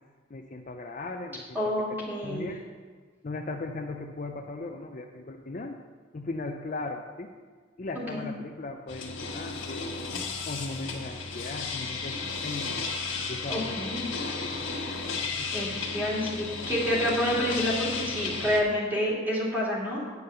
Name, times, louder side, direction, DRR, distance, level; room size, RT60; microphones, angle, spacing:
voice 1, 0.3-1.6 2.0-2.6 3.2-5.8 6.1-7.3 7.8-9.9 10.5-12.2 12.4-12.7 13.3-14.5 15.4-15.5, left 3 dB, 40° left, 3 dB, 0.5 m, -37 dB
voice 2, 1.5-2.5 8.1-8.3 13.5-14.1 14.9-15.0 15.5-20.1, equal, 10° right, -6 dB, 2.5 m, -28 dB
sound 1, 8.9-18.6, left 4 dB, 75° left, 1.5 m, -34 dB
9.4 x 5.5 x 6.8 m, 1.5 s
head